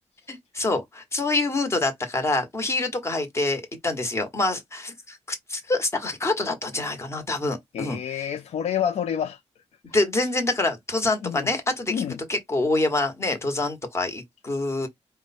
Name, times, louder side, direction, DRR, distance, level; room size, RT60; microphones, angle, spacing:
voice 1, 0.3-8.3 9.8-11.9 12.3-14.9, left 2 dB, 25° left, 1.2 m, -26 dB
voice 2, 7.7-9.4 11.2-11.5 11.9-12.2, left 8 dB, 70° left, 0.5 m, -28 dB
4.7 x 2.2 x 4.1 m
wide cardioid pair, 150°, 11 cm